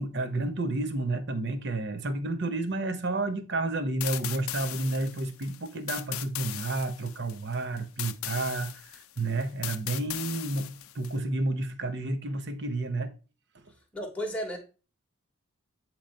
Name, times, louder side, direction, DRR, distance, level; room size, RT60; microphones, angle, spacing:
voice 1, 0.0-13.1 13.5-13.7, right 2 dB, 50° right, 0.8 m, -31 dB
sound 1, 4.0-11.1, left 14 dB, 75° left, 0.4 m, -38 dB
voice 2, 13.9-14.6, equal, 5° left, 1.1 m, -33 dB
8.7 x 3.0 x 5.1 m
head